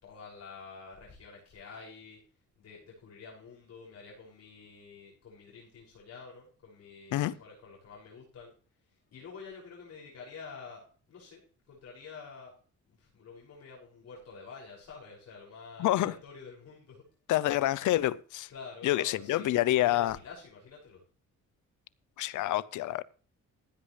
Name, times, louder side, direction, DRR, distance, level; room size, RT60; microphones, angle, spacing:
voice 1, 0.0-2.2 2.6-8.5 9.1-11.4 11.7-12.5 13.0-17.0 18.5-21.0, left 5 dB, 60° left, 6.4 m, -48 dB
voice 2, 15.8-16.2 17.3-18.5 18.8-20.2 22.2-23.0, left 14 dB, 80° left, 0.7 m, -27 dB
16.0 x 9.9 x 3.3 m
cardioid pair, 90°, 30 cm